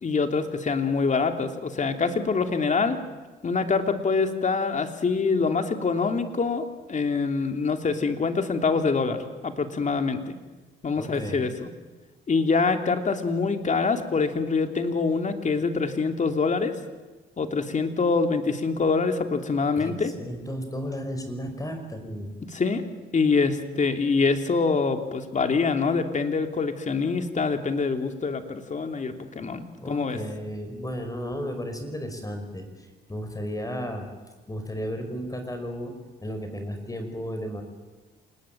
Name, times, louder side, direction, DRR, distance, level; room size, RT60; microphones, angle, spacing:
voice 1, 0.0-3.0 3.4-10.3 10.8-11.7 12.3-16.7 17.4-20.1 22.5-22.8 23.1-30.2, left 4 dB, 40° left, 6 dB, 3.0 m, -25 dB
voice 2, 11.0-11.4 19.8-22.3 29.8-34.1 34.5-37.6, equal, 15° left, 6 dB, 5.5 m, -34 dB
28.0 x 19.5 x 9.2 m, 1.2 s
cardioid pair, 90°, 20 cm